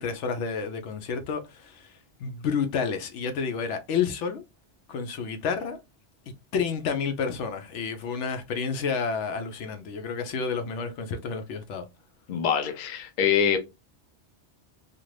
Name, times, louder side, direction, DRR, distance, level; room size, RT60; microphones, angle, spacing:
voice 1, 0.0-4.4 4.9-5.8 6.3-11.9, left 6 dB, 80° left, 0.9 m, -30 dB
voice 2, 12.3-13.6, left 8 dB, 55° left, 0.6 m, -24 dB
2.5 x 2.4 x 3.1 m
omnidirectional pair, 1.2 m